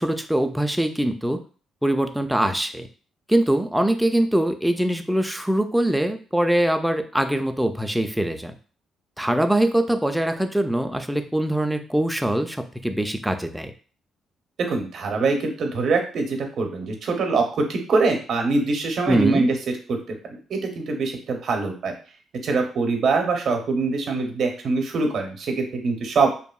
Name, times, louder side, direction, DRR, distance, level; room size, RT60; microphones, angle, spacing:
voice 1, 0.0-1.4 1.8-2.9 3.3-8.5 9.2-13.7 19.1-19.5, right 1 dB, 5° right, 6 dB, 0.3 m, -23 dB
voice 2, 14.6-17.4 17.7-19.5 19.9-20.0 20.5-21.9 22.4-26.3, right 4 dB, 60° right, 4 dB, 0.6 m, -23 dB
2.7 x 2.5 x 2.3 m, 0.40 s
cardioid pair, 90°, 0 cm